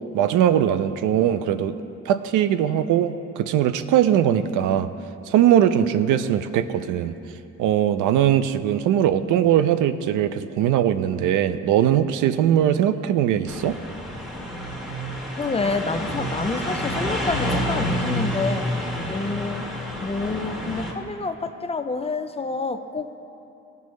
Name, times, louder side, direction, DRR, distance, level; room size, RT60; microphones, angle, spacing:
voice 1, 0.1-1.7 2.1-4.9 5.3-7.1 7.6-13.8, right 10 dB, 85° right, 11 dB, 0.5 m, -20 dB
sound 1, 13.5-20.9, equal, ahead, 1.5 m, -28 dB
voice 2, 15.4-19.7 20.0-23.2, left 3 dB, 20° left, 8 dB, 0.4 m, -28 dB
16.0 x 5.4 x 3.1 m, 2.8 s
cardioid pair, 90°, 30 cm